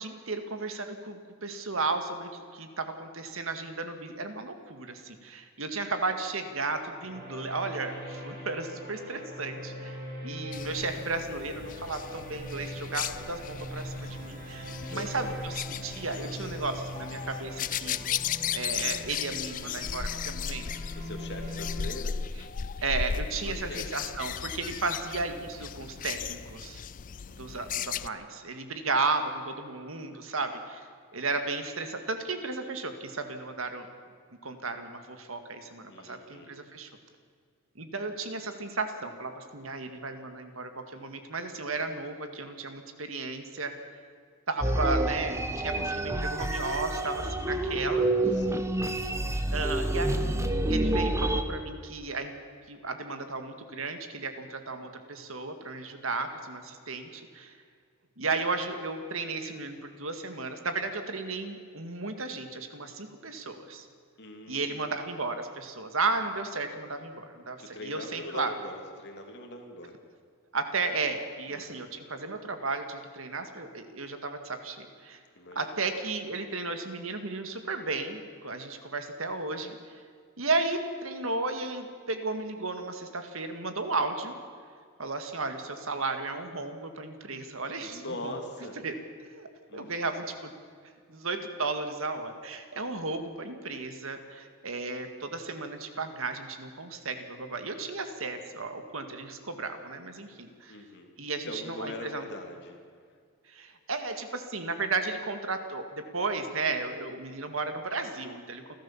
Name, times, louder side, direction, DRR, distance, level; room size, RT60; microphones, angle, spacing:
voice 1, 0.0-10.0 10.2-18.0 18.5-20.7 22.8-26.8 27.4-30.9 31.1-33.9 34.4-36.9 37.8-43.7 44.5-48.3 49.5-52.3 52.7-57.6 58.2-63.9 64.5-68.5 70.5-75.2 75.6-79.8 80.4-84.3 85.0-88.3 88.8-88.9 89.3-90.5 91.1-100.8 101.2-102.3 103.5-108.7, right 3 dB, 70° right, 7 dB, 2.0 m, -34 dB
sound 1, 7.0-21.9, equal, 45° right, 7.6 m, -41 dB
sound 2, 10.5-28.1, left 8 dB, 40° left, 0.4 m, -36 dB
voice 2, 14.9-15.4 16.4-16.6 20.9-22.2 23.4-23.9 35.9-36.6 47.2-47.6 48.3-48.7 64.2-65.0 67.6-70.0 71.5-71.9 75.3-75.8 87.8-88.8 89.7-90.3 100.7-101.1 101.4-102.8, left 1 dB, 55° left, 3 dB, 3.0 m, -42 dB
sound 3, 44.6-51.4, right 1 dB, 15° right, 1.1 m, -28 dB
29.0 x 12.5 x 7.3 m, 2.1 s
head